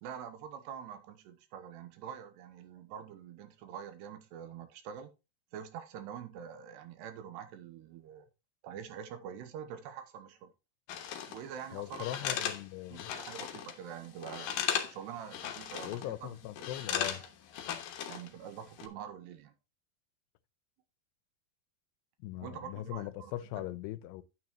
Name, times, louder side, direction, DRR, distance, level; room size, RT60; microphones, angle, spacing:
voice 1, 0.0-5.1 5.5-8.3 8.6-10.5 11.3-12.4 12.9-14.6 14.9-16.3 16.8-17.3 18.1-19.5 22.4-23.7, right 8 dB, 85° right, 3.2 m, -45 dB
sound 1, 10.9-11.4 11.9-13.8 14.0-15.0 15.3-16.1 16.6-18.3 18.6-18.9, left 9 dB, 70° left, 2.5 m, -36 dB
voice 2, 11.7-13.1 15.8-17.2 22.2-24.2, left 14 dB, 90° left, 2.8 m, -40 dB
9.4 x 8.9 x 3.1 m
omnidirectional pair, 4.7 m